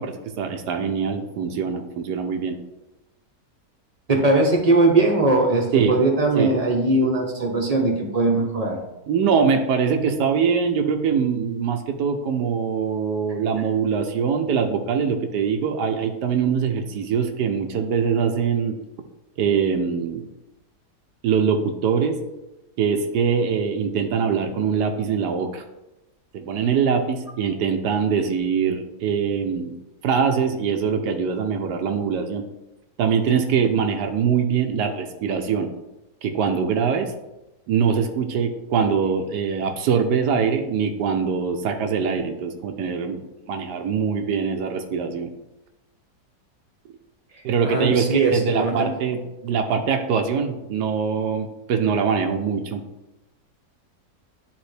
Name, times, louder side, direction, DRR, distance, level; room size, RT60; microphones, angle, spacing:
voice 1, 0.0-2.6 5.7-6.0 6.4-6.5 9.1-18.7 19.4-20.2 21.2-22.1 22.8-25.6 26.3-29.8 30.0-32.4 33.0-35.7 36.2-37.1 37.7-43.2 43.5-45.3 47.4-52.8, right 6 dB, 85° right, 5 dB, 1.2 m, -23 dB
voice 2, 4.1-8.8 47.6-48.9, right 2 dB, 30° right, 1 dB, 0.8 m, -20 dB
10.0 x 3.5 x 3.3 m, 0.96 s
omnidirectional pair, 1.7 m